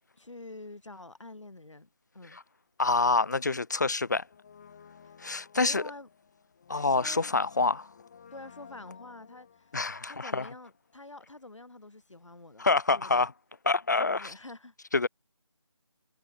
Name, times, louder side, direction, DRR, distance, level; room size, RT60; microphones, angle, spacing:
voice 1, 0.2-2.4 5.0-5.1 5.5-6.1 6.9-7.3 8.3-9.7 10.1-12.7 12.9-13.3 13.9-14.7, left 2 dB, 75° left, 1.9 m, -47 dB
voice 2, 2.8-4.3 5.2-5.8 6.7-7.9 9.7-10.5 12.6-13.3 13.7-14.3 14.9-15.1, left 3 dB, 35° left, 0.5 m, -27 dB
Brass instrument, 4.2-11.1 11.4-11.5, left 7 dB, 20° left, 1.4 m, -55 dB
figure-of-eight pair, 165°, 16 cm